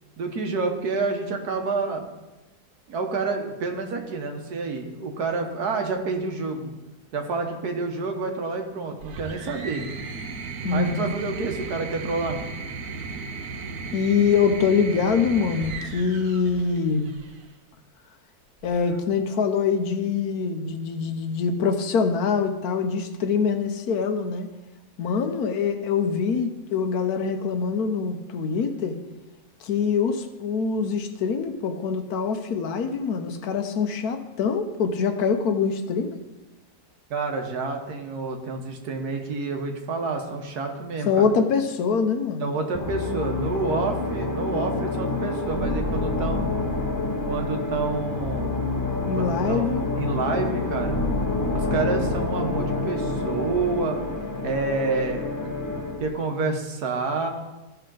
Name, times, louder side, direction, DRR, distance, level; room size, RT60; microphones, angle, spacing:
voice 1, 0.2-2.1 2.9-6.7 7.1-9.9 10.7-12.4 37.1-41.3 42.4-46.4 47.2-48.6 49.1-51.0 51.5-54.0 54.4-55.4 56.0-57.3, right 3 dB, 80° right, 4 dB, 1.6 m, -28 dB
sound 1, 9.0-17.4 18.6-19.2, right 4 dB, 60° right, 1.2 m, -36 dB
voice 2, 10.6-11.1 13.9-17.1 18.6-24.5 25.0-29.0 29.6-36.2 41.1-42.5 49.1-49.8, left 5 dB, 75° left, 7 dB, 1.3 m, -24 dB
sound 2, 42.7-56.1, left 2 dB, 15° left, 0.8 m, -27 dB
15.0 x 5.7 x 3.8 m, 1.1 s
omnidirectional pair, 1.7 m